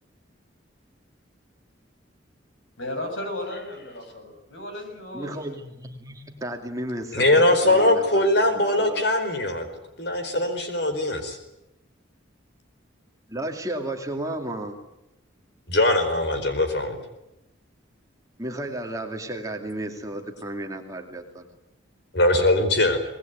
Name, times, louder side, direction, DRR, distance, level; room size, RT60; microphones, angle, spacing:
voice 1, 2.8-5.3, left 1 dB, 80° left, 5 dB, 7.2 m, -34 dB
voice 2, 5.1-9.1 13.3-14.8 18.4-21.5, right 1 dB, 15° right, 3 dB, 2.5 m, -34 dB
voice 3, 7.1-9.7 10.0-11.4 15.7-17.0 22.1-23.0, left 1 dB, 60° left, 8 dB, 4.5 m, -21 dB
25.0 x 20.0 x 9.3 m, 0.91 s
head